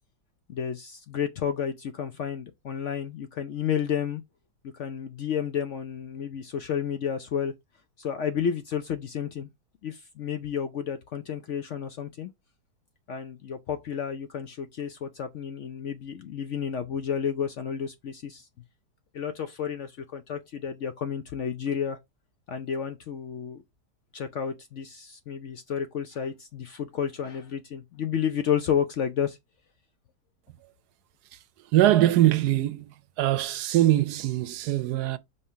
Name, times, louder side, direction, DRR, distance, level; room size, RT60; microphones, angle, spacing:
voice 1, 0.5-4.2 4.7-7.5 8.0-9.5 9.8-12.3 13.1-18.5 19.1-22.0 22.5-23.6 24.1-29.4, left 8 dB, 65° left, 0.7 m, -31 dB
voice 2, 31.7-32.9 33.2-35.2, right 14 dB, 75° right, 1.1 m, -22 dB
5.5 x 3.2 x 5.6 m
omnidirectional pair, 1.8 m